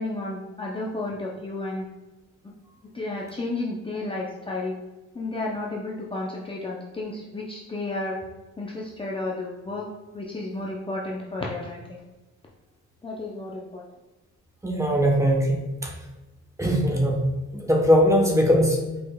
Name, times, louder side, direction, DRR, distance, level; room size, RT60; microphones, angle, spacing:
voice 1, 0.0-1.9 2.4-2.5 2.9-4.7 5.1-8.2 8.6-9.9 10.1-12.0 13.0-13.8, left 2 dB, 20° left, -4 dB, 0.6 m, -32 dB
voice 2, 14.6-15.9 16.6-17.3 17.5-18.8, equal, 10° right, 0 dB, 0.9 m, -20 dB
4.8 x 4.2 x 2.2 m, 1.1 s
cardioid pair, 90°, 30 cm